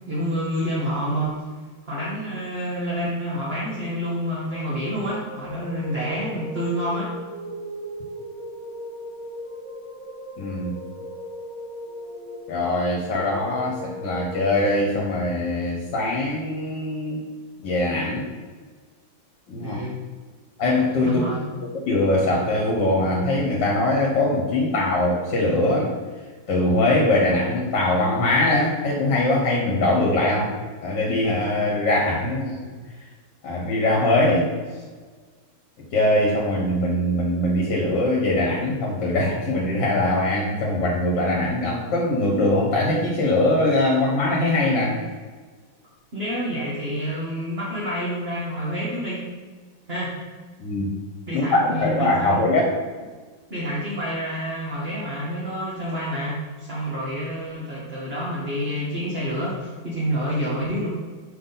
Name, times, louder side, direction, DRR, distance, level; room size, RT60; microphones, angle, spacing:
voice 1, 0.1-1.4 1.8-7.1 19.6-20.0 21.0-21.4 45.8-49.2 49.9-50.1 51.3-52.4 53.5-60.9, equal, 35° right, -7 dB, 1.6 m, -28 dB
sound 1, 4.1-14.4, equal, 60° right, 2.2 m, -38 dB
voice 2, 10.4-10.8 12.5-17.2 17.6-18.3 19.5-19.8 20.6-21.2 21.9-25.9 26.5-30.5 30.8-32.6 33.4-34.5 35.9-45.0 50.6-50.9 51.3-52.6, left 1 dB, 65° left, -2 dB, 1.8 m, -22 dB
6.1 x 5.6 x 4.0 m, 1.4 s
omnidirectional pair, 2.1 m